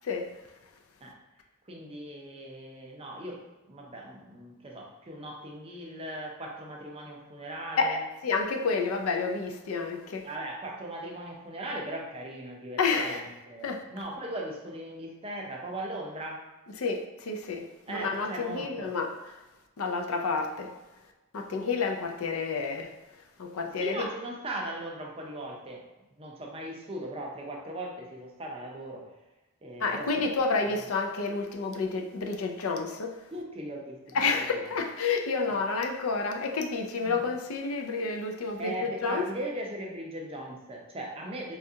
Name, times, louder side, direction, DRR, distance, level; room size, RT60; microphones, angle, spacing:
voice 1, 1.7-8.0 10.2-16.5 17.9-18.9 23.8-25.8 26.2-29.1 29.6-30.3 33.3-34.2 35.5-35.6 37.0-37.2 38.6-41.6, right 1 dB, 25° right, -1 dB, 0.5 m, -38 dB
voice 2, 7.8-10.3 12.8-13.2 13.6-13.8 16.8-19.4 19.8-20.7 21.3-22.9 23.4-24.1 29.8-33.2 34.1-39.3, left 4 dB, 70° left, 3 dB, 0.4 m, -30 dB
4.3 x 2.4 x 2.7 m, 1.1 s
head